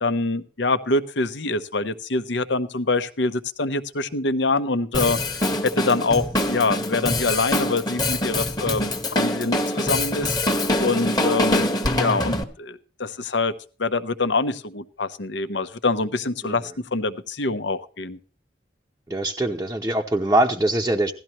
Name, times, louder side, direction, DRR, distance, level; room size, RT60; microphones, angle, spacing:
voice 1, 0.0-10.4 10.8-13.5 13.8-18.2, left 3 dB, 75° left, 12 dB, 0.8 m, -25 dB
Drum kit, 4.9-12.4, left 1 dB, 20° left, 1.2 m, -24 dB
voice 2, 19.1-21.1, right 1 dB, 15° right, 0 dB, 0.7 m, -22 dB
16.5 x 12.5 x 3.0 m, 0.36 s
head